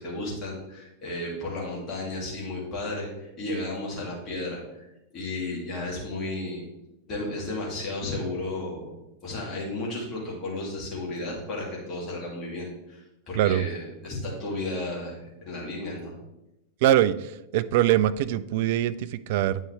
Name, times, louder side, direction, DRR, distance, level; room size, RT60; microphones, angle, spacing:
voice 1, 0.0-4.9 5.1-6.6 7.1-8.9 9.2-16.1, left 2 dB, 30° left, -4 dB, 2.9 m, -33 dB
voice 2, 13.3-13.7 16.8-19.6, right 12 dB, 50° right, 15 dB, 0.3 m, -23 dB
9.0 x 5.4 x 3.6 m, 0.90 s
figure-of-eight pair, 90°, 0 cm